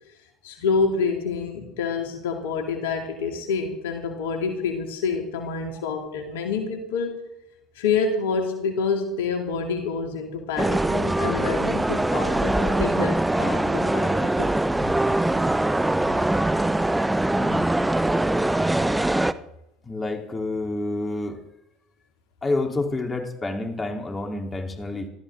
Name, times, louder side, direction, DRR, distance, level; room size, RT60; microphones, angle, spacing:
voice 1, 0.4-7.2 7.8-14.5, left 5 dB, 75° left, 3 dB, 2.4 m, -27 dB
sound 1, 10.6-19.3, right 1 dB, 10° right, 0.9 m, -22 dB
voice 2, 17.4-17.7 19.8-21.4 22.4-25.1, left 2 dB, 25° left, 2 dB, 3.6 m, -28 dB
28.0 x 13.0 x 3.8 m, 0.82 s
hypercardioid pair, 70°, 0 cm